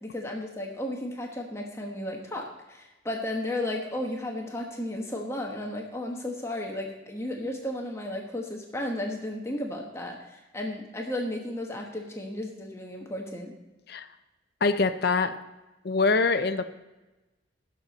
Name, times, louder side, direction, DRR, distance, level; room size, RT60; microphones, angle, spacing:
voice 1, 0.0-13.5, left 1 dB, 15° left, 0 dB, 1.2 m, -34 dB
voice 2, 14.6-15.4 15.8-16.7, left 4 dB, 60° left, 10 dB, 0.6 m, -24 dB
17.0 x 6.7 x 4.1 m, 1.1 s
head